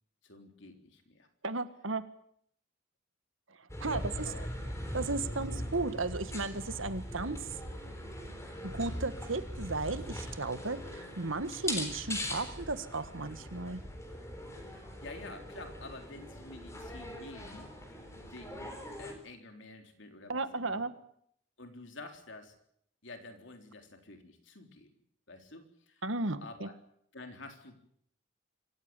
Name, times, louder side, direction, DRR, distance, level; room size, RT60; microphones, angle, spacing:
voice 1, 0.2-1.3 3.8-4.5 5.4-5.6 14.6-18.7 19.0-20.8 21.6-22.5 23.0-24.9 25.3-26.0 26.4-26.7 27.1-27.8, left 2 dB, 65° left, 5 dB, 3.8 m, -49 dB
voice 2, 1.4-2.0 3.8-4.0 4.9-7.4 8.6-13.8 20.3-20.9 26.0-26.7, right 3 dB, 75° right, 12 dB, 1.6 m, -35 dB
sound 1, 3.7-19.1, left 1 dB, 15° left, 3.9 m, -41 dB
25.5 x 15.5 x 9.0 m, 0.70 s
head